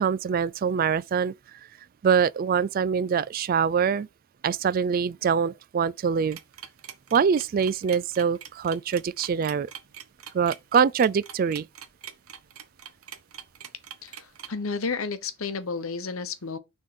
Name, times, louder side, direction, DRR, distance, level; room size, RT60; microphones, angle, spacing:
voice 1, 0.0-1.3 2.0-4.1 4.4-6.4 7.1-9.7 10.3-11.7, right 6 dB, 40° right, 0.3 m, -24 dB
sound 1, 6.3-14.5, right 9 dB, 85° right, 1.1 m, -42 dB
voice 2, 14.0-16.6, left 4 dB, 75° left, 1.0 m, -32 dB
6.3 x 3.7 x 5.8 m
head